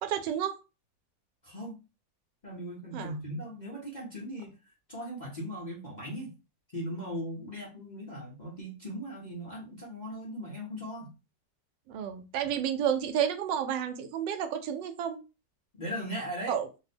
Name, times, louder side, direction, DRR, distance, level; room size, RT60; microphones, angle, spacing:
voice 1, 0.0-0.5 2.9-3.1 11.9-15.2 16.5-16.7, right 9 dB, 85° right, 8 dB, 1.3 m, -31 dB
voice 2, 1.4-1.8 2.4-4.5 4.9-6.3 6.7-11.1 15.7-16.6, equal, 50° left, -3 dB, 0.5 m, -38 dB
2.9 x 2.1 x 4.1 m, 0.29 s
omnidirectional pair, 1.9 m